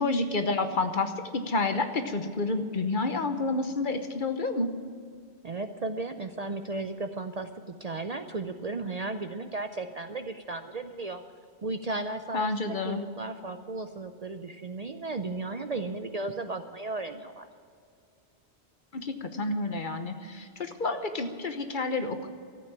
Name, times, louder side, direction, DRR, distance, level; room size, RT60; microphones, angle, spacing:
voice 1, 0.0-4.7 12.3-13.0 18.9-22.3, left 3 dB, 50° left, 8 dB, 1.1 m, -29 dB
voice 2, 5.4-11.2 11.6-17.5, right 3 dB, 45° right, 8 dB, 0.6 m, -35 dB
13.5 x 8.6 x 8.8 m, 2.3 s
omnidirectional pair, 1.1 m